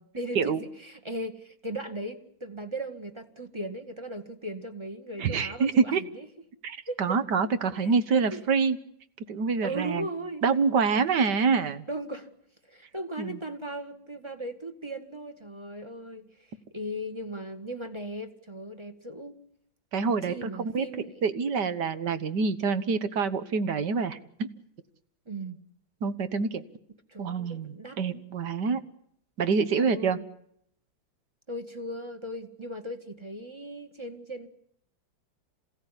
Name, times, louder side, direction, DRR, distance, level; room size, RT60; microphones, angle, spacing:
voice 1, 0.1-6.3 6.9-7.2 7.8-7.9 8.3-8.4 9.6-10.4 11.9-12.3 12.7-16.4 16.7-19.4 20.2-21.2 25.3-25.6 27.1-28.0 29.8-30.2 31.5-34.5, right 1 dB, 15° right, 5 dB, 1.7 m, -37 dB
voice 2, 5.2-6.0 6.6-8.8 9.3-10.1 10.4-11.8 13.2-13.4 19.9-20.9 21.2-24.5 26.0-26.6 27.2-28.8 29.4-30.2, right 5 dB, 60° right, 12 dB, 1.8 m, -26 dB
27.0 x 16.5 x 9.9 m, 0.69 s
omnidirectional pair, 2.1 m